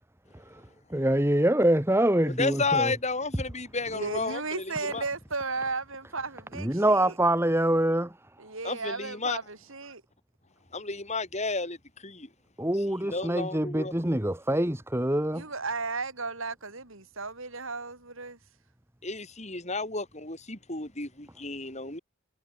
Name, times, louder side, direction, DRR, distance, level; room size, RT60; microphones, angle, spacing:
voice 1, 0.9-2.9 6.6-8.2 12.6-15.4, right 1 dB, 10° right, 1.6 m, -25 dB
voice 2, 2.2-5.0 8.6-9.4 10.7-11.8 12.0-12.3 13.0-13.9 19.0-22.0, left 3 dB, 30° left, 5.3 m, -32 dB
voice 3, 3.9-7.1 8.4-10.0 15.3-18.4, right 3 dB, 60° right, 3.7 m, -35 dB
head